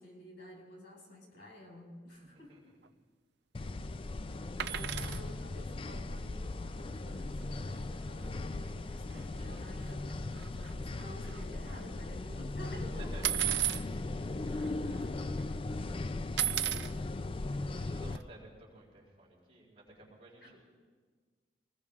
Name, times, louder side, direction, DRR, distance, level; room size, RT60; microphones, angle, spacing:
voice 1, 0.0-2.6 3.6-3.7 4.7-13.1 17.8-18.2 20.4-20.6, left 1 dB, 75° left, -1 dB, 5.1 m, -51 dB
sound 1, 3.5-18.2, left 2 dB, 30° left, 0.4 m, -38 dB
voice 2, 4.2-5.1 9.3-9.5 9.8-9.9 12.7-13.5 14.3-15.9 16.1-16.3 17.4-20.6, right 2 dB, 35° right, -4 dB, 5.1 m, -56 dB
sound 2, 4.6-5.2 7.4-7.5 7.8-7.9 8.2-8.3 9.1-9.2 9.7-10.1 10.4-11.8 13.2-13.8 14.6-14.7 14.9-15.4 16.4-16.9 18.1-18.2, right 13 dB, 70° right, 0.5 m, -34 dB
25.0 x 20.0 x 2.5 m, 1.5 s
head